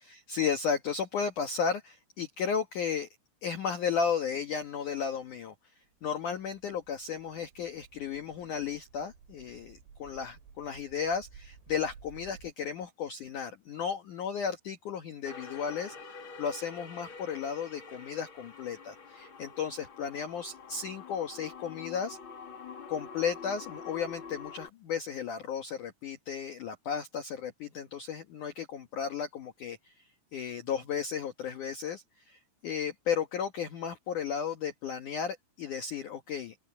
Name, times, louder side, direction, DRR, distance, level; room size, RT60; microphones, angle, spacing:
voice 1, 0.1-3.1 3.4-5.5 6.0-22.2 22.9-29.8 30.3-36.6, left 7 dB, 80° left, 1.8 m, -34 dB
sound 1, 5.9-12.5, right 6 dB, 75° right, 7.7 m, -55 dB
sound 2, 15.2-24.7, left 5 dB, 40° left, 1.9 m, -46 dB
open air
omnidirectional pair, 6.0 m